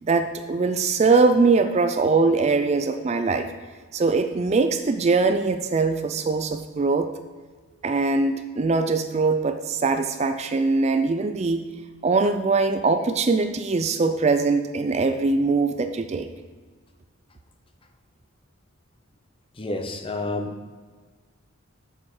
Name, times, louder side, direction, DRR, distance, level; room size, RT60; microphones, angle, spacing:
voice 1, 0.0-3.5 3.9-7.1 7.8-11.6 12.0-16.3, right 3 dB, 30° right, 8 dB, 0.3 m, -22 dB
voice 2, 19.6-20.5, left 2 dB, 25° left, 6 dB, 0.6 m, -29 dB
7.2 x 6.6 x 4.8 m, 1.5 s
head